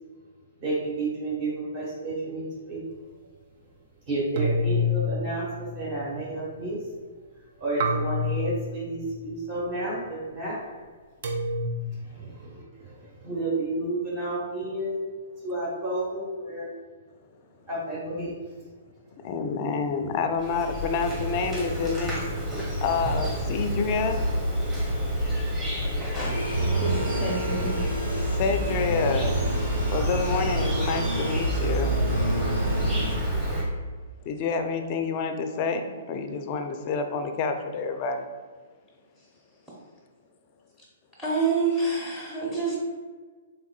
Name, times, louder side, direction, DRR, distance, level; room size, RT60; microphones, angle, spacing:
voice 1, 0.6-2.8 4.1-6.8 7.6-10.6 11.8-15.0 15.4-16.7 17.7-18.4, right 2 dB, 35° right, -6 dB, 1.1 m, -31 dB
sound 1, 4.4-6.1 7.8-9.2 11.2-11.7, left 2 dB, 50° right, 0.4 m, -28 dB
voice 2, 19.2-22.2 22.8-24.3 28.4-29.3 29.9-32.0 34.3-38.3, left 4 dB, 35° left, 6 dB, 0.4 m, -28 dB
Insect, 20.4-33.6, equal, 15° right, 1.5 m, -29 dB
voice 3, 26.0-26.3 26.8-27.8 41.2-42.8, right 4 dB, ahead, -4 dB, 0.8 m, -28 dB
sound 2, 26.3-33.1, right 2 dB, 75° right, 1.4 m, -29 dB
3.6 x 3.4 x 2.3 m, 1.5 s
figure-of-eight pair, 120°, 0 cm